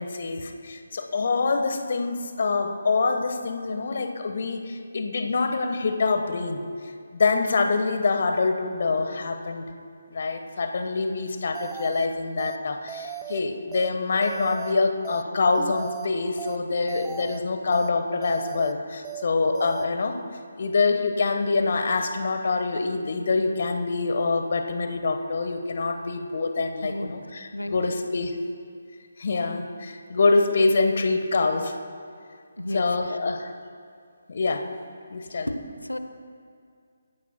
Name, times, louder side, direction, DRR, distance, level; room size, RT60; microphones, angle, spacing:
voice 1, 0.0-6.6 7.1-9.6 10.1-20.2 20.6-28.3 29.2-31.8 32.7-33.5 34.3-34.7 35.1-35.5, left 3 dB, 50° left, 6 dB, 1.2 m, -25 dB
sound 1, 11.5-12.1 12.4-12.6 12.9-13.4 13.7-13.9 14.2-14.7 15.0-15.2 15.5-16.1 16.4-16.6 16.9-17.4 17.7-17.9 18.2-18.7 19.0-19.2 19.5-19.9, right 9 dB, 15° right, 0.5 m, -37 dB
voice 2, 26.8-27.8 32.6-33.2 35.5-36.0, left 1 dB, 85° left, 9 dB, 0.9 m, -33 dB
24.0 x 14.5 x 2.2 m, 2.3 s
figure-of-eight pair, 145°, 0 cm